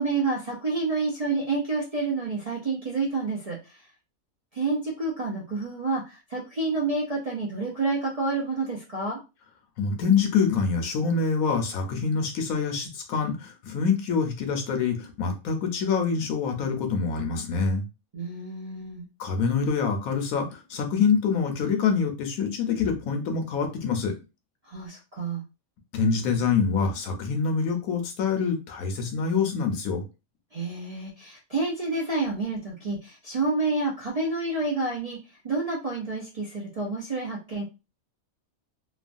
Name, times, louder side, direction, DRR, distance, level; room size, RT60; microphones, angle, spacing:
voice 1, 0.0-3.8 4.5-9.2 18.1-19.1 24.6-25.4 30.5-35.2 35.4-37.6, right 3 dB, 45° right, -3 dB, 0.5 m, -29 dB
voice 2, 9.8-17.9 19.2-24.1 25.9-30.0, left 5 dB, 80° left, 4 dB, 1.2 m, -25 dB
3.1 x 2.2 x 2.5 m, 0.28 s
omnidirectional pair, 1.5 m